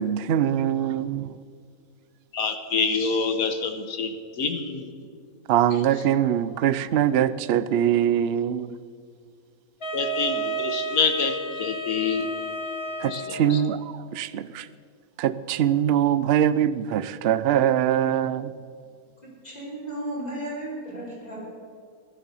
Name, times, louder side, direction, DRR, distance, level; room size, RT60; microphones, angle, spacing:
voice 1, 0.0-1.3 5.5-8.7 13.0-14.7 15.2-18.5, right 10 dB, 60° right, 14 dB, 0.7 m, -23 dB
voice 2, 2.3-4.9 9.9-12.3 13.0-13.6, left 5 dB, 80° left, 7 dB, 1.6 m, -27 dB
Wind instrument woodwind instrument, 9.8-13.7, right 2 dB, 45° left, 2.0 m, -32 dB
voice 3, 19.4-21.5, right 1 dB, 30° left, -5 dB, 5.8 m, -34 dB
16.0 x 12.5 x 7.0 m, 2.2 s
omnidirectional pair, 1.5 m